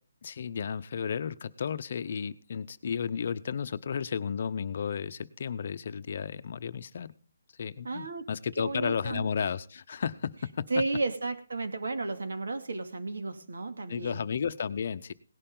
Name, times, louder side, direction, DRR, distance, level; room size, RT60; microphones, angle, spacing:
voice 1, 0.2-7.1 7.6-10.7 13.9-15.1, left 7 dB, 40° left, 12 dB, 0.7 m, -33 dB
voice 2, 7.8-8.3 8.6-9.3 10.7-14.2, right 3 dB, 75° right, 7 dB, 2.5 m, -33 dB
18.0 x 11.5 x 3.9 m, 0.39 s
hypercardioid pair, 175°, 0 cm